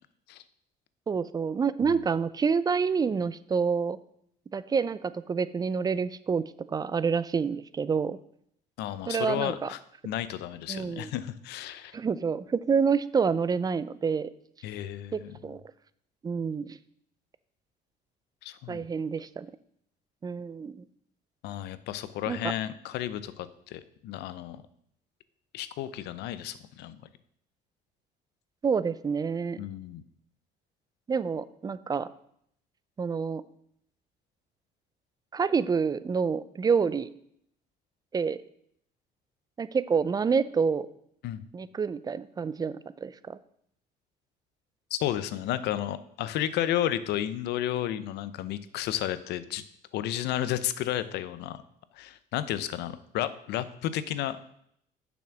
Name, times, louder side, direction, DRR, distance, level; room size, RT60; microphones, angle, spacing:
voice 1, 1.1-4.0 4.5-8.2 9.1-9.7 10.7-11.1 11.9-14.3 15.1-15.6 16.2-16.8 18.7-19.5 20.2-20.8 22.3-22.4 28.6-29.6 31.1-32.1 33.0-33.4 35.3-37.1 38.1-38.4 39.6-40.9 41.5-43.4, right 5 dB, 25° right, 16 dB, 0.4 m, -28 dB
voice 2, 8.8-12.0 14.6-15.3 18.4-18.8 21.4-24.6 25.5-27.0 29.6-30.0 41.2-41.4 44.9-49.6 49.9-51.6 51.9-54.4, left 12 dB, 80° left, 14 dB, 0.6 m, -32 dB
7.2 x 6.1 x 6.0 m, 0.70 s
cardioid pair, 110°, 17 cm